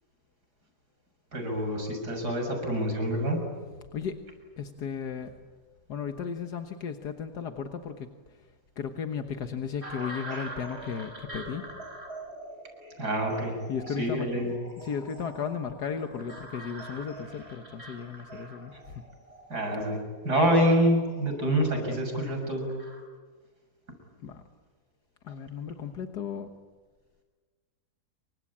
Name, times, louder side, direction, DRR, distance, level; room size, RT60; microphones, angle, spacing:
voice 1, 1.3-3.4 13.0-13.5 14.0-14.5 19.5-22.7, equal, 75° right, 3 dB, 7.4 m, -26 dB
voice 2, 4.6-5.4 5.9-8.4 8.8-11.7 13.7-14.5 14.8-19.0 24.2-24.4 25.2-26.5, left 6 dB, 80° left, 6 dB, 1.9 m, -35 dB
sound 1, 9.8-23.0, right 1 dB, 40° right, 6.1 m, -44 dB
28.5 x 24.5 x 8.7 m, 1.4 s
omnidirectional pair, 1.7 m